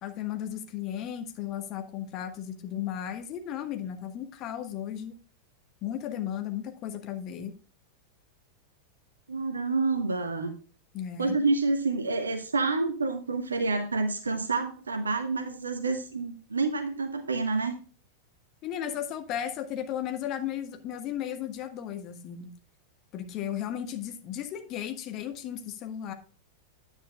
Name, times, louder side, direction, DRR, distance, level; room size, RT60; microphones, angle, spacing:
voice 1, 0.0-5.2 5.8-7.5 10.9-11.3 18.6-22.5 23.1-26.1, left 10 dB, 35° left, 7 dB, 1.2 m, -35 dB
voice 2, 9.3-10.5 11.2-17.7, right 3 dB, 75° right, 7 dB, 0.8 m, -28 dB
9.8 x 9.0 x 2.3 m, 0.38 s
figure-of-eight pair, 90°, 0 cm